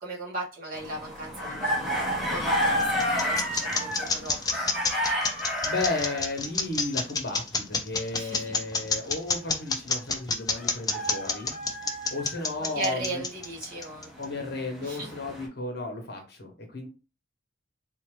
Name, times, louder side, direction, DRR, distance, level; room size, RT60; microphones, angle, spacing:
voice 1, 0.0-4.5 8.1-8.5 12.6-14.1 14.8-15.1, right 2 dB, 45° right, -5 dB, 1.7 m, -37 dB
sound 1, 0.7-6.3 10.6-12.6 13.3-15.5, equal, ahead, 1.1 m, -30 dB
sound 2, 2.4-14.2, left 4 dB, 20° left, 0.5 m, -28 dB
voice 2, 5.3-11.5 12.1-13.2 14.2-16.9, left 2 dB, 55° left, 2 dB, 1.1 m, -34 dB
3.8 x 2.8 x 3.2 m, 0.32 s
head